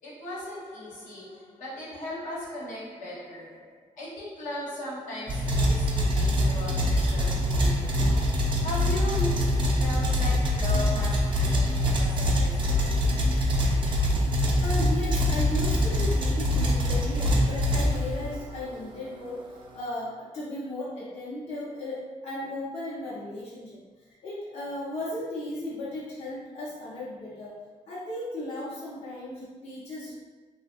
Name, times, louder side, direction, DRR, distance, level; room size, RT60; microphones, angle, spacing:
voice 1, 0.0-13.0, left 1 dB, 80° left, -7 dB, 1.0 m, -38 dB
sound 1, 5.3-18.5, left 1 dB, 40° right, 0.5 m, -24 dB
voice 2, 14.6-19.5 19.7-23.7 24.2-27.6 27.9-30.1, left 1 dB, 55° left, -9 dB, 0.7 m, -35 dB
2.7 x 2.1 x 2.5 m, 1.3 s
cardioid pair, 85°, 13 cm